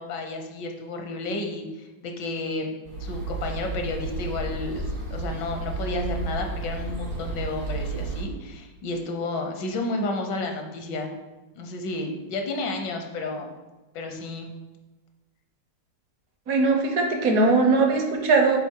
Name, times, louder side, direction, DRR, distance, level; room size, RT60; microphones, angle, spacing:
voice 1, 0.0-2.7 3.0-11.2 11.6-13.5 13.9-14.5, left 2 dB, 80° left, 4 dB, 1.5 m, -31 dB
sound 1, 2.8-8.2, right 3 dB, 80° right, 1.9 m, -32 dB
voice 2, 16.5-18.6, right 3 dB, 60° right, 3 dB, 1.2 m, -20 dB
7.3 x 3.4 x 4.5 m, 1.2 s
omnidirectional pair, 1.9 m